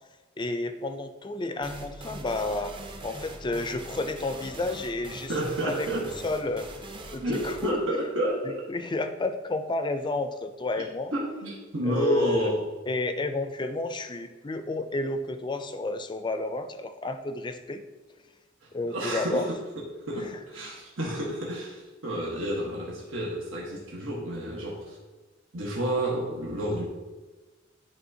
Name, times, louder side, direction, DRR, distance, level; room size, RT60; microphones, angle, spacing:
voice 1, 0.4-2.7 3.0-5.3 5.6-6.7 7.1-7.8 8.4-11.1 11.8-12.5 12.9-17.8 18.7-19.5 20.2-20.3, left 2 dB, 25° left, 8 dB, 0.4 m, -31 dB
sound 1, 1.6-9.1, right 1 dB, 25° right, 0.6 m, -42 dB
voice 2, 5.3-6.1 7.2-8.6 11.1-12.7 18.6-25.0 25.5-26.8, right 1 dB, 85° right, -4 dB, 1.3 m, -30 dB
10.5 x 3.7 x 2.8 m, 1.2 s
head